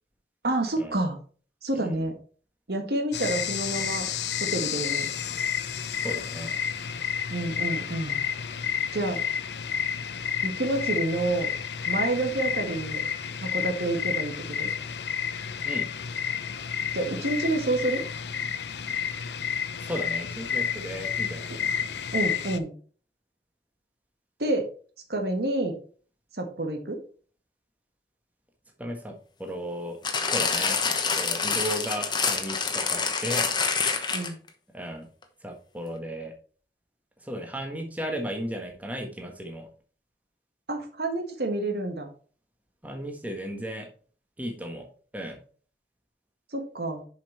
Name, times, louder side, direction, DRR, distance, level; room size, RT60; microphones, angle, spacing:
voice 1, 0.4-1.2 1.6-2.1 2.7-4.1 4.5-5.1 7.3-8.2 8.9-9.2 10.4-11.5 11.9-13.0 13.4-14.7 16.9-18.0 22.1-22.7 24.4-24.7 25.1-25.8 26.4-27.0 34.1-34.4 40.7-42.1 46.5-47.0, right 2 dB, 65° right, 4 dB, 1.5 m, -28 dB
voice 2, 1.7-2.1 6.0-6.5 15.6-15.9 19.8-21.7 28.8-30.0 30.3-33.5 34.7-35.1 35.4-36.3 37.2-39.7 42.8-43.9 44.4-44.9 45.1-45.4, equal, 10° right, 2 dB, 1.4 m, -35 dB
sound 1, 3.1-22.6, left 8 dB, 80° left, 0.7 m, -31 dB
sound 2, 30.0-34.5 35.2-35.3, left 5 dB, 25° left, 1.1 m, -26 dB
7.2 x 5.5 x 4.4 m, 0.40 s
head